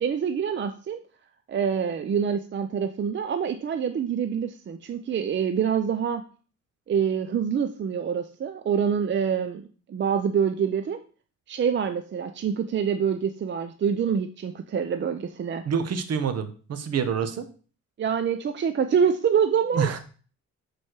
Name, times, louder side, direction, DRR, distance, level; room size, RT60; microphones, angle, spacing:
voice 1, 0.0-1.0 1.5-6.2 6.9-11.0 11.5-15.6 18.0-20.0, right 7 dB, 40° right, 8 dB, 0.6 m, -26 dB
voice 2, 15.6-17.4 19.7-20.0, right 7 dB, 55° right, 10 dB, 1.1 m, -27 dB
6.5 x 4.3 x 4.6 m, 0.39 s
cardioid pair, 90°, 30 cm